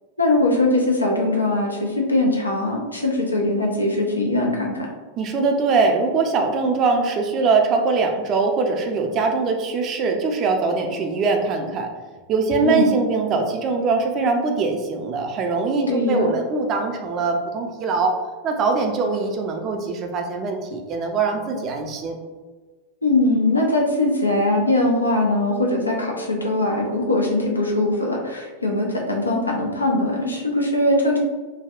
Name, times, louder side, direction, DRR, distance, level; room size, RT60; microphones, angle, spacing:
voice 1, 0.2-4.9 12.6-12.9 15.9-16.3 23.0-31.2, left 2 dB, 80° left, -1 dB, 0.5 m, -21 dB
voice 2, 5.2-11.9 12.3-18.1 18.4-22.2, right 4 dB, 35° right, 3 dB, 0.4 m, -22 dB
3.4 x 2.1 x 2.4 m, 1.3 s
figure-of-eight pair, 90°, 0 cm